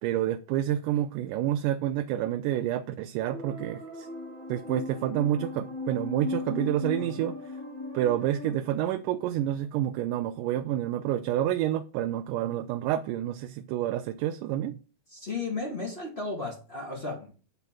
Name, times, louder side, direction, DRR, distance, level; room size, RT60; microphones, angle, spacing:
voice 1, 0.0-4.1 4.5-7.3 7.9-14.8, right 12 dB, 80° right, 2.1 m, -28 dB
sound 1, 3.3-8.5, left 3 dB, 20° right, 1.4 m, -37 dB
voice 2, 15.1-17.3, left 3 dB, 25° left, 1.6 m, -34 dB
9.2 x 4.0 x 7.3 m
omnidirectional pair, 3.8 m